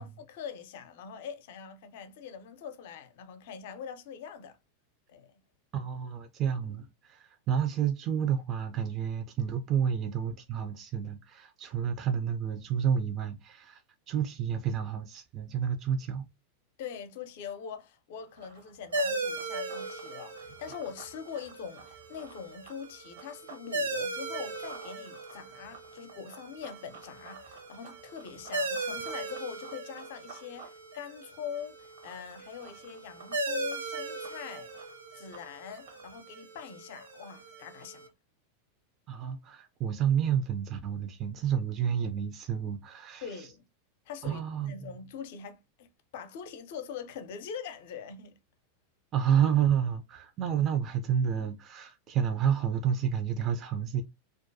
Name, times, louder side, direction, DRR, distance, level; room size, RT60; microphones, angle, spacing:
voice 1, 0.0-4.6 5.1-5.4 16.8-38.1 43.2-43.6 44.1-45.9 46.1-48.4, left 7 dB, 65° left, 0.5 m, -43 dB
voice 2, 5.7-13.8 14.1-16.3 39.1-43.5 44.2-44.9 49.1-54.0, right 8 dB, 40° right, 0.4 m, -30 dB
Run, 18.2-23.7 24.0-36.2, right 5 dB, 70° right, 0.8 m, -53 dB
sound 1, 18.9-38.1, right 2 dB, 90° right, 0.5 m, -38 dB
2.4 x 2.2 x 2.6 m
hypercardioid pair, 105°, 0 cm